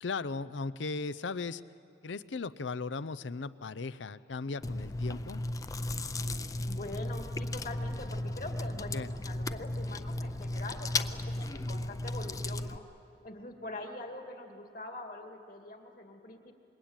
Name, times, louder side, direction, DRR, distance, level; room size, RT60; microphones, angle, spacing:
voice 1, 0.0-1.6 2.0-5.4 8.9-9.1, left 4 dB, 85° left, 16 dB, 0.6 m, -37 dB
Chewing mastication, 4.6-12.8, left 2 dB, 20° left, 0.5 m, -35 dB
voice 2, 6.7-12.8 13.2-16.5, left 2 dB, 50° left, 4 dB, 2.3 m, -44 dB
27.0 x 22.0 x 8.9 m, 2.7 s
head